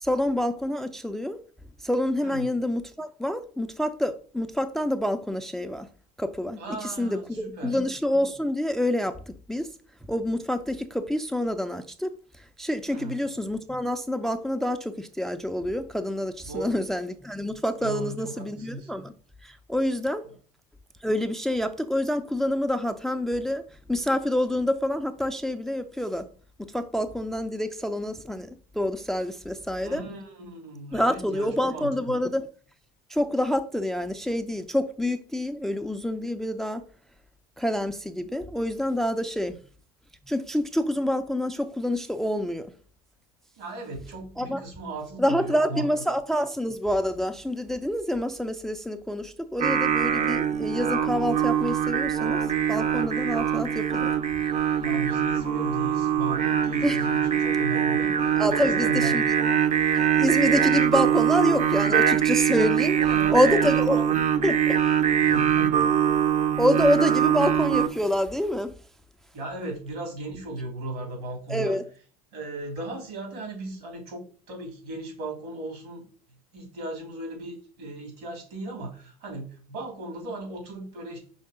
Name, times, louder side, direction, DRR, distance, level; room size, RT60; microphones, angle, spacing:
voice 1, 0.0-1.4 1.8-5.9 6.2-9.7 10.1-12.1 12.6-19.1 19.4-20.2 21.0-23.6 23.9-26.3 26.7-30.0 30.9-32.5 33.1-36.8 37.6-39.6 40.3-42.7 44.4-44.6 45.2-52.4 52.7-54.1 56.8-57.0 58.4-59.2 60.1-63.0 63.3-64.0 64.4-65.0 65.2-65.4 66.6-68.7 71.5-71.8, left 1 dB, ahead, 0.5 m, -27 dB
voice 2, 2.2-2.5 6.6-7.8 12.9-13.2 16.4-16.8 17.8-18.9 29.8-32.2 43.5-45.9 50.1-50.2 54.8-59.2 62.8-64.1 65.3-65.8 67.2-67.3 69.3-71.8 72.3-76.0 76.5-81.2, right 2 dB, 70° right, 3.2 m, -36 dB
Singing, 49.6-67.9, right 9 dB, 35° right, 0.7 m, -23 dB
5.5 x 3.4 x 4.9 m
hypercardioid pair, 80°, 20 cm